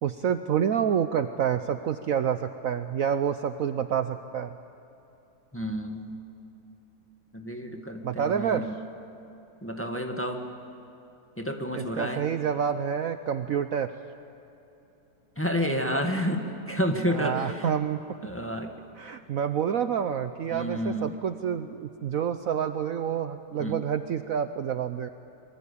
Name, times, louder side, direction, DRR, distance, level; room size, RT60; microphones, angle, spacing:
voice 1, 0.0-4.6 8.0-8.7 11.7-13.9 17.1-18.0 19.0-25.1, right 8 dB, 60° right, 9 dB, 1.0 m, -28 dB
voice 2, 5.5-6.1 7.3-8.8 9.6-10.4 11.4-12.2 15.4-17.7 18.2-18.7 20.5-21.2 23.6-23.7, equal, 5° left, 3 dB, 1.9 m, -30 dB
26.5 x 23.0 x 8.5 m, 2.9 s
omnidirectional pair, 1.8 m